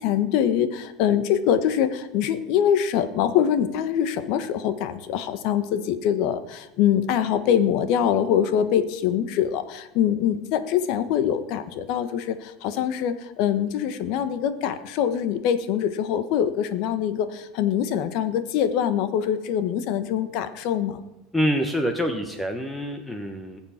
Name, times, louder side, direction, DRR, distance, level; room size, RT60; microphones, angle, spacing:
voice 1, 0.0-21.0, left 9 dB, 60° left, 11 dB, 1.3 m, -24 dB
voice 2, 21.3-23.6, equal, 10° left, 6 dB, 1.2 m, -26 dB
20.5 x 7.2 x 5.8 m, 0.94 s
supercardioid pair, 135°, 0 cm